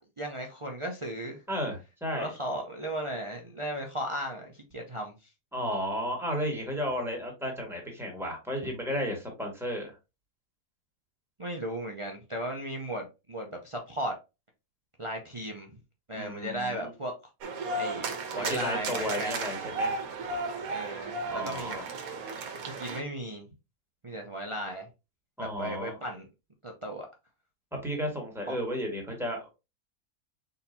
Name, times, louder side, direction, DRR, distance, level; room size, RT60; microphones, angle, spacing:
voice 1, 0.0-1.4 2.1-5.1 8.6-8.7 11.4-14.1 15.0-15.8 16.1-17.1 17.7-19.3 20.7-21.8 22.6-23.4 24.0-24.9 25.4-26.3 26.6-27.1 28.5-28.6, right 1 dB, 40° right, 0.4 m, -36 dB
voice 2, 1.5-2.3 5.5-9.9 16.1-16.9 18.3-20.0 21.3-21.9 25.4-26.0 27.8-29.4, equal, ahead, 1.5 m, -33 dB
sound 1, 17.4-23.0, right 3 dB, 70° right, 1.2 m, -34 dB
4.3 x 3.9 x 2.6 m
omnidirectional pair, 1.6 m